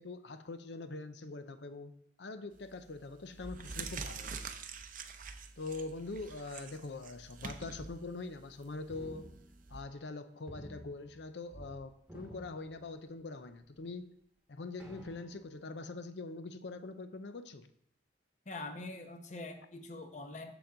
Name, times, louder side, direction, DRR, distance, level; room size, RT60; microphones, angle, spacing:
voice 1, 0.0-1.9 2.2-4.5 5.6-9.3 9.7-14.1 14.5-17.7, left 3 dB, 75° left, 11 dB, 0.6 m, -43 dB
sound 1, 2.5-2.8 3.3-9.8, right 5 dB, 50° right, 0.6 m, -45 dB
sound 2, 8.9-10.1 10.5-11.8 12.0-13.3 13.9-14.0 14.8-15.6, equal, 5° right, 1.2 m, -52 dB
voice 2, 18.5-20.5, left 2 dB, 40° left, 6 dB, 0.8 m, -44 dB
7.1 x 7.0 x 3.8 m, 0.76 s
head